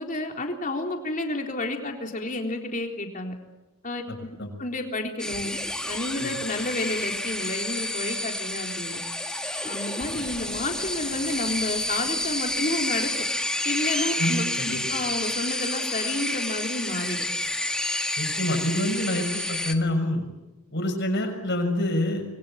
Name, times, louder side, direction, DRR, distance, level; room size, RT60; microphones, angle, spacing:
voice 1, 0.0-3.3 3.8-4.3 4.6-5.5 5.9-9.0 9.6-13.1 13.6-17.3, left 2 dB, 35° left, 3 dB, 3.7 m, -30 dB
voice 2, 4.1-4.5 6.2-6.3 14.1-14.8 18.2-20.2 20.7-22.4, left 1 dB, 55° left, 4 dB, 6.5 m, -27 dB
sound 1, 5.2-19.7, left 1 dB, 5° left, 1.6 m, -29 dB
26.5 x 22.5 x 8.8 m, 1.0 s
head